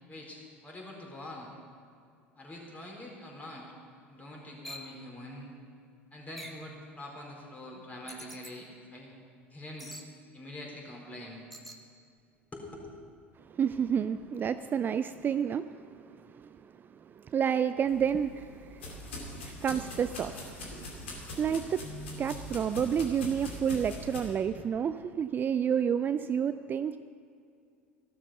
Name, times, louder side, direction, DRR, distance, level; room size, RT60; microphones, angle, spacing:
voice 1, 0.1-1.5 2.4-3.7 4.1-5.5 6.1-9.1 9.5-9.9 10.3-11.4 12.5-13.0, left 1 dB, 25° left, -2 dB, 4.5 m, -45 dB
sound 1, 4.6-4.9 6.4-6.7 8.1-8.5 9.8-10.1 11.5-11.8, equal, ahead, 1.5 m, -45 dB
voice 2, 13.4-27.0, right 8 dB, 30° right, 12 dB, 0.4 m, -31 dB
sound 2, 17.8-24.2, left 1 dB, 75° left, 2.7 m, -42 dB
14.0 x 12.0 x 5.8 m, 2.4 s
figure-of-eight pair, 70°, 7 cm